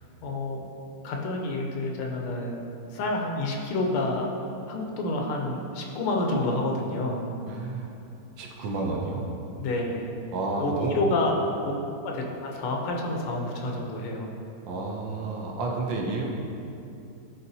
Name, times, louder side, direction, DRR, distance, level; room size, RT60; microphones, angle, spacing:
voice 1, 0.2-0.6 1.0-4.3 4.7-7.2 9.5-10.1 10.6-11.4 12.0-14.3, left 2 dB, 85° left, 0 dB, 1.7 m, -29 dB
voice 2, 7.5-7.9 8.4-9.3 10.3-11.0 14.7-16.3, right 3 dB, 70° right, -1 dB, 1.3 m, -30 dB
11.0 x 4.1 x 2.7 m, 2.7 s
omnidirectional pair, 2.4 m